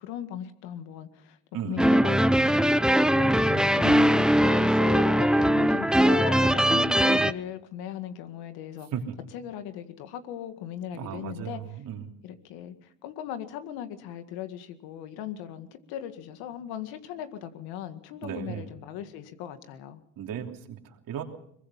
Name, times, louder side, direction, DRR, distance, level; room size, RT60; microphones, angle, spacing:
voice 1, 0.0-1.4 1.6-3.2 3.5-8.9 9.3-11.6 12.2-20.0, left 10 dB, 80° left, 9 dB, 2.0 m, -38 dB
voice 2, 1.5-2.0 3.1-3.5 8.9-9.2 10.9-12.1 18.2-18.7 20.2-21.2, right 9 dB, 65° right, 3 dB, 3.2 m, -36 dB
sound 1, 1.8-7.3, equal, ahead, 0.7 m, -21 dB
23.0 x 22.0 x 5.7 m, 0.70 s
supercardioid pair, 75°, 37 cm